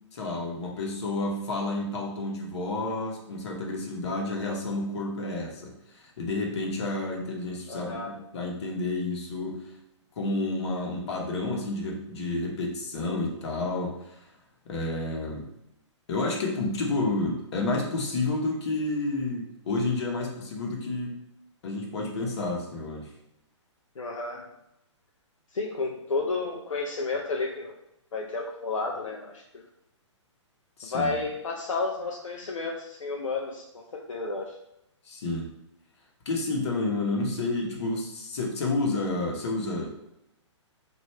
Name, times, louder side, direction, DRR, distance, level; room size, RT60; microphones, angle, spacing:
voice 1, 0.1-8.0 8.3-9.6 10.2-14.3 14.6-15.5 16.1-21.2 21.6-23.1 30.8-31.2 35.0-35.5 36.2-39.9, left 2 dB, 60° left, 0 dB, 1.1 m, -30 dB
voice 2, 7.7-8.1 24.0-24.4 25.5-27.8 28.1-29.4 30.9-34.5, left 3 dB, 85° left, -1 dB, 0.6 m, -31 dB
3.1 x 2.6 x 4.2 m, 0.82 s
hypercardioid pair, 135°, 16 cm